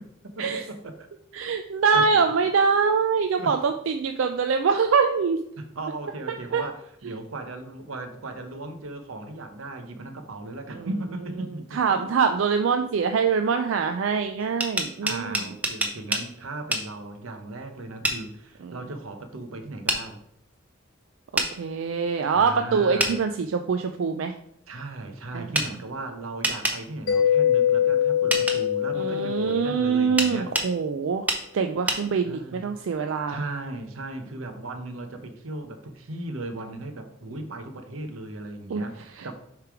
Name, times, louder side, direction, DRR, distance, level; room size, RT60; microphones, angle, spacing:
voice 1, 0.4-1.1 1.9-2.2 3.4-3.6 5.6-12.1 15.0-20.2 22.3-23.2 24.7-30.5 32.2-32.6 33.3-39.0 39.2-39.3, right 2 dB, 90° right, 7 dB, 0.8 m, -37 dB
voice 2, 1.3-5.4 6.5-6.6 7.0-7.2 10.7-10.9 11.7-15.4 18.6-18.8 21.3-24.3 25.3-25.5 28.9-31.3 31.5-33.4 38.7-38.8 39.2-39.3, right 5 dB, 70° right, 6 dB, 0.4 m, -24 dB
sound 1, 14.4-16.3 16.7-16.9 18.0-18.2 19.9-20.0 21.4-21.5 23.0-23.2 25.5-25.7 26.4-26.8 28.3-28.6 30.2-30.7 31.3-31.4 31.9-32.0, right 1 dB, 5° right, 0.6 m, -25 dB
Mallet percussion, 27.1-30.5, left 9 dB, 65° left, 0.8 m, -24 dB
6.8 x 3.3 x 4.7 m, 0.71 s
head